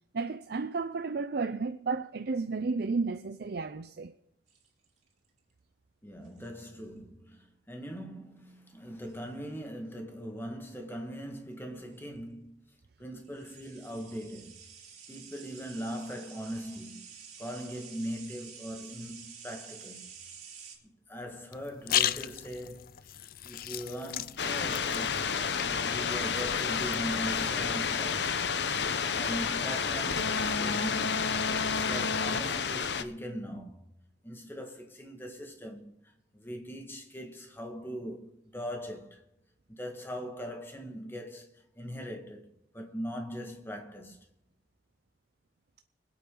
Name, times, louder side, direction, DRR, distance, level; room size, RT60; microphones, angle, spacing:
voice 1, 0.1-4.1, right 4 dB, 60° right, 0.5 m, -32 dB
sound 1, 4.5-5.3 6.2-6.7 9.1-9.3 11.5-11.6 11.8-12.0 13.2-20.8, right 6 dB, 40° right, 3.1 m, -50 dB
voice 2, 6.0-12.5 13.0-14.7 15.1-17.1 17.4-20.1 20.8-23.0 23.4-25.3 25.5-28.4 29.1-31.2 31.6-33.9 34.2-39.2 39.7-44.2, equal, 15° left, 1.7 m, -41 dB
sound 2, 21.5-27.7, left 12 dB, 55° left, 0.4 m, -36 dB
sound 3, 24.4-33.0, left 6 dB, 70° left, 0.8 m, -30 dB
25.0 x 8.7 x 3.9 m
head